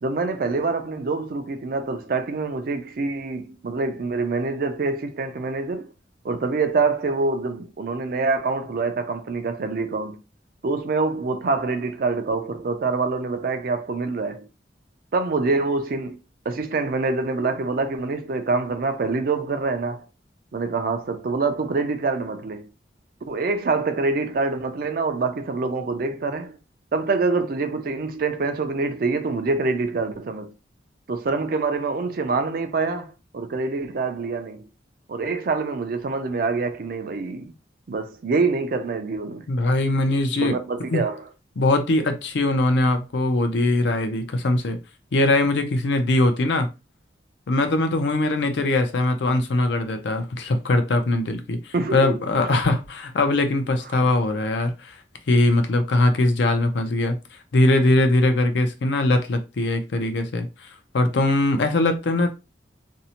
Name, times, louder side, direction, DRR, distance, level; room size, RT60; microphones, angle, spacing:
voice 1, 0.0-5.9 6.2-10.2 10.6-14.5 15.1-16.2 16.5-20.1 20.5-22.7 23.3-26.6 26.9-30.5 31.1-34.7 35.1-37.5 37.9-39.5 40.4-41.2 51.7-52.5, right 3 dB, 50° right, 0.4 m, -25 dB
voice 2, 39.5-40.6 40.9-41.0 41.6-44.8 45.1-46.7 47.5-62.3, left 2 dB, 70° left, 0.5 m, -21 dB
2.6 x 2.0 x 2.8 m
head